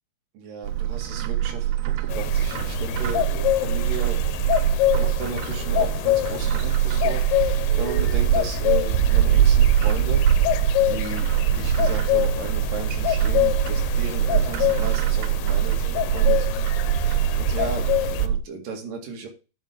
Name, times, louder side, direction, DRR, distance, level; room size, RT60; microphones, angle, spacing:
voice 1, 0.3-4.2 5.0-10.3 10.9-16.5 16.8-17.1 17.4-19.3, right 4 dB, 60° right, 2 dB, 3.7 m, -35 dB
Bird, 0.6-18.4, right 11 dB, 85° right, 2.9 m, -23 dB
sound 1, 2.1-18.3, left 14 dB, 85° left, 2.7 m, -26 dB
10.5 x 5.6 x 5.0 m, 0.32 s
omnidirectional pair, 4.6 m